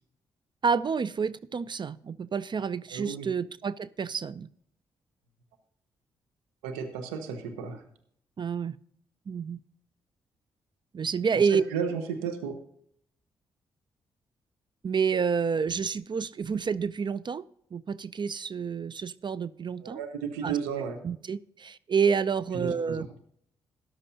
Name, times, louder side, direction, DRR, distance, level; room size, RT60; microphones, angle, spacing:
voice 1, 0.6-4.5 8.4-8.8 9.3-9.6 10.9-11.6 14.8-17.4 17.7-20.0 20.4-20.6 21.0-23.1, right 6 dB, 40° right, 0.5 m, -29 dB
voice 2, 2.9-3.3 6.6-7.8 11.3-12.6 19.8-21.0 22.5-23.1, right 6 dB, 85° right, 1.0 m, -34 dB
13.5 x 11.0 x 2.8 m
hypercardioid pair, 40°, 12 cm